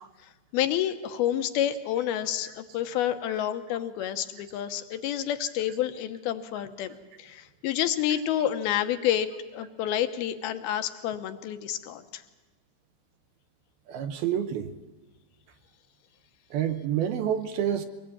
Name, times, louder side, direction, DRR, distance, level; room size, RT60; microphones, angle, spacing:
voice 1, 0.5-12.2, left 11 dB, 75° left, 2.6 m, -29 dB
voice 2, 13.9-14.7 16.5-17.9, right 9 dB, 75° right, 2.4 m, -28 dB
23.5 x 20.0 x 8.8 m
omnidirectional pair, 5.3 m